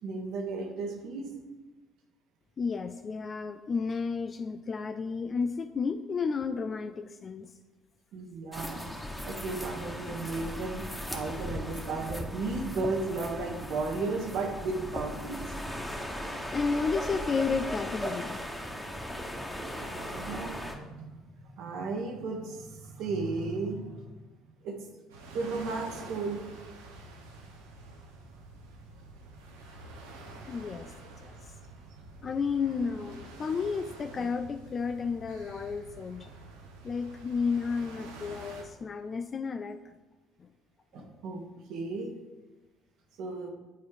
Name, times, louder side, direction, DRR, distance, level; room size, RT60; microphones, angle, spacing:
voice 1, 0.0-1.3 8.1-8.9 9.2-15.5 19.8-24.1 24.6-24.7 25.3-26.4 40.9-42.1 43.2-43.5, right 3 dB, 60° right, 3 dB, 1.4 m, -34 dB
voice 2, 2.6-7.5 16.5-18.4 19.0-19.2 30.5-30.9 31.2-31.4 32.2-36.3 36.8-39.8 40.4-40.5 40.9-41.1, left 5 dB, 40° left, 8 dB, 0.4 m, -32 dB
sound 1, 8.5-20.7, equal, 5° left, 1.4 m, -37 dB
sound 2, 25.1-38.6, right 3 dB, 80° right, 1.1 m, -48 dB
9.3 x 4.6 x 5.0 m, 1.1 s
figure-of-eight pair, 55°, 0 cm